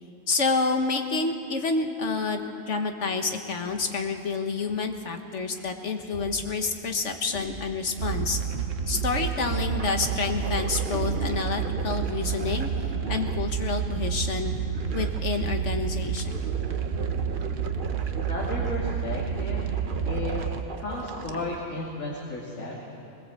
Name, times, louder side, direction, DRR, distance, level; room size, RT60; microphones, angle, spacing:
voice 1, 0.3-8.4 8.9-14.5 14.9-16.5, left 4 dB, 65° left, 5 dB, 1.8 m, -28 dB
sound 1, 2.7-2.8 3.3-4.4 5.5-6.0 7.5-7.6 8.2-8.5 9.0-14.1 14.7-15.9 16.2-21.6, right 4 dB, 45° right, 1.1 m, -39 dB
sound 2, 5.5-5.7 6.1-6.9 7.3-8.1 8.5-8.6 8.9-9.7 10.9-11.6, equal, 40° left, 7.9 m, -43 dB
sound 3, 8.0-20.6, right 7 dB, 70° right, 1.3 m, -29 dB
voice 2, 18.3-19.7 20.0-20.5 20.8-22.8, left 2 dB, 80° left, -5 dB, 3.0 m, -34 dB
21.5 x 20.5 x 7.7 m, 2.9 s
omnidirectional pair, 1.4 m